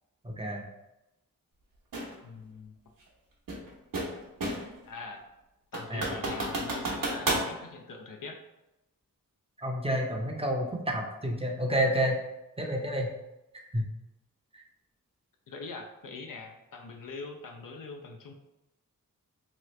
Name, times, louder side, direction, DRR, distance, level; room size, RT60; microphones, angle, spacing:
voice 1, 0.2-0.6 5.9-6.1 9.6-12.2 12.6-13.1 13.5-13.8 14.5-14.6, equal, 15° right, 0 dB, 0.6 m, -29 dB
sound 1, 1.9-2.1 3.5-4.8 5.2-5.3 5.7-7.5, right 2 dB, 75° right, 0.8 m, -31 dB
voice 2, 2.2-2.7 4.8-5.2 5.7-8.4 15.5-18.3, left 4 dB, 65° left, 2 dB, 0.6 m, -42 dB
2.9 x 2.4 x 3.1 m, 0.93 s
cardioid pair, 50°, 34 cm